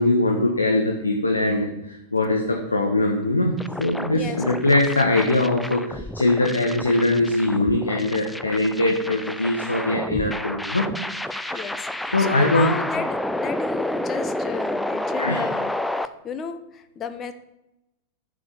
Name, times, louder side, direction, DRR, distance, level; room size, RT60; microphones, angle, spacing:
voice 1, 0.0-10.9 11.3-11.6 12.1-12.7 15.2-15.4, left 2 dB, 80° left, 1 dB, 1.5 m, -22 dB
sound 1, 3.6-16.1, left 1 dB, 5° left, 0.5 m, -30 dB
voice 2, 4.1-4.4 11.5-15.7 16.2-17.3, left 6 dB, 25° left, 9 dB, 1.1 m, -33 dB
10.5 x 6.9 x 7.2 m, 0.92 s
figure-of-eight pair, 90°, 0 cm